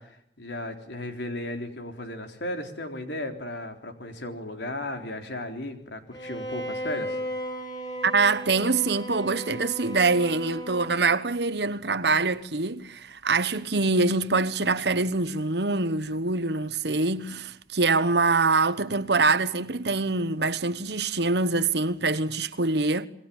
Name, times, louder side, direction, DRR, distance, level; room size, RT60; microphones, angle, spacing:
voice 1, 0.0-7.2, left 1 dB, 75° left, 3.9 m, -35 dB
Bowed string instrument, 6.1-11.2, equal, 25° left, 4.8 m, -35 dB
voice 2, 8.0-23.1, right 3 dB, 70° right, 1.2 m, -24 dB
27.5 x 22.0 x 7.2 m
head